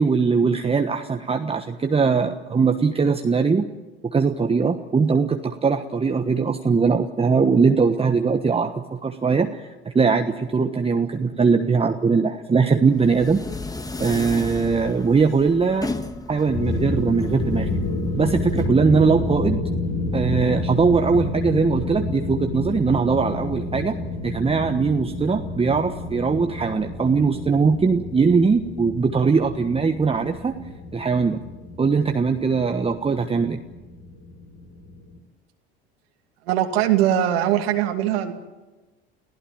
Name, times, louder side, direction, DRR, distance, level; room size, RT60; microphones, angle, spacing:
voice 1, 0.0-3.6 4.0-13.4 14.0-15.9 16.3-17.7 18.2-19.6 20.1-24.0 24.2-30.5 30.9-31.4 31.8-33.6, right 5 dB, 20° right, 6 dB, 1.3 m, -21 dB
sound 1, 12.9-18.7, left 2 dB, 10° left, 1.7 m, -34 dB
sound 2, 16.4-35.2, left 2 dB, 60° left, 6.4 m, -29 dB
voice 2, 36.5-38.3, right 11 dB, 75° right, 4 dB, 2.5 m, -21 dB
30.0 x 16.0 x 9.1 m, 1.2 s
hypercardioid pair, 75°, 32 cm